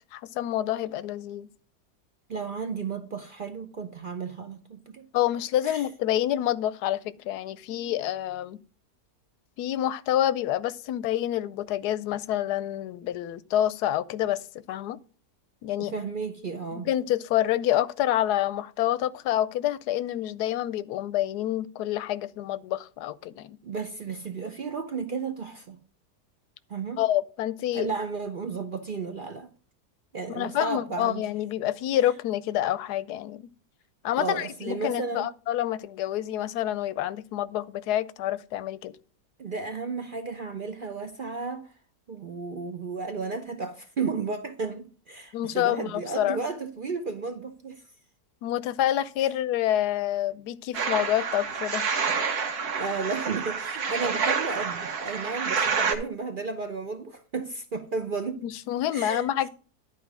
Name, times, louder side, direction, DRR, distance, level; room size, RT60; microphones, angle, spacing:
voice 1, 0.1-1.5 5.1-8.6 9.6-15.0 15.6-15.9 16.7-23.6 27.0-27.9 30.3-33.5 34.0-38.9 45.3-46.4 48.4-52.0 58.4-59.5, left 12 dB, 90° left, 1.1 m, -28 dB
voice 2, 2.3-5.1 5.6-5.8 15.8-16.9 23.6-25.8 26.7-27.0 27.7-29.5 30.1-31.2 34.1-35.3 39.4-41.7 42.1-47.8 52.8-58.4 58.9-59.3, right 4 dB, 50° right, 0.6 m, -33 dB
sound 1, 50.7-56.0, right 5 dB, 80° right, 1.8 m, -28 dB
11.0 x 4.5 x 6.0 m
omnidirectional pair, 1.6 m